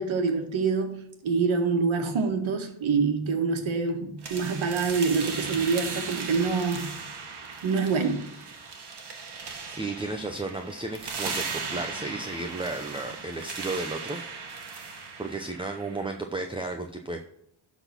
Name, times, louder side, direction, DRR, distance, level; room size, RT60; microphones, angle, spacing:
voice 1, 0.0-6.9 7.6-8.2, right 4 dB, 70° right, 4 dB, 1.8 m, -26 dB
sound 1, 4.2-16.2, right 4 dB, 55° right, 1.8 m, -37 dB
voice 2, 9.7-14.7 15.2-17.2, right 2 dB, 10° right, 4 dB, 0.7 m, -34 dB
12.5 x 4.2 x 6.0 m, 0.75 s
wide cardioid pair, 125°, 48 cm